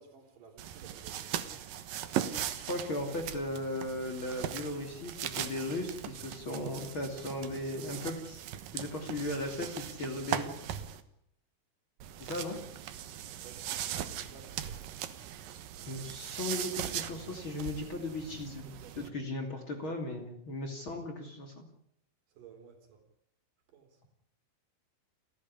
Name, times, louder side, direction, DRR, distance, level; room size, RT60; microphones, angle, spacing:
voice 1, 0.0-1.5 13.2-14.8 15.6-16.0 18.0-18.2 18.8-19.2 22.3-23.0 23.7-24.0, right 6 dB, 45° right, 5 dB, 4.8 m, -56 dB
sound 1, 0.6-11.0 12.0-19.1, right 10 dB, 75° right, 2.1 m, -39 dB
voice 2, 2.6-8.4 8.7-10.5 12.2-12.6 15.9-18.7 19.0-21.7, left 1 dB, 35° left, 4 dB, 2.5 m, -37 dB
30.0 x 12.5 x 9.9 m, 0.74 s
omnidirectional pair, 5.8 m